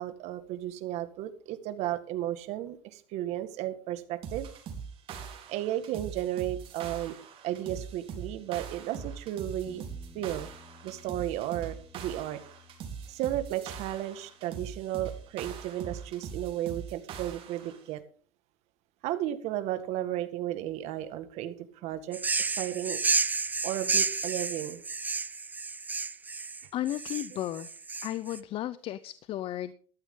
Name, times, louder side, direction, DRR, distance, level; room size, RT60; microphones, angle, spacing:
voice 1, 0.0-4.5 5.5-7.2 7.4-9.9 10.1-10.5 10.8-12.4 13.1-18.0 19.0-21.6 21.8-22.2 22.5-23.0 23.6-24.8, right 13 dB, 70° right, 10 dB, 1.8 m, -34 dB
sound 1, 4.2-17.8, right 6 dB, 50° right, 3.9 m, -42 dB
Bass guitar, 9.7-15.9, left 3 dB, 5° left, 1.8 m, -57 dB
sound 2, 22.1-28.4, right 4 dB, 15° right, 0.5 m, -31 dB
voice 2, 26.7-27.7 28.0-29.7, left 13 dB, 50° left, 15 dB, 0.7 m, -34 dB
14.0 x 12.5 x 3.8 m, 0.42 s
cardioid pair, 135°, 12 cm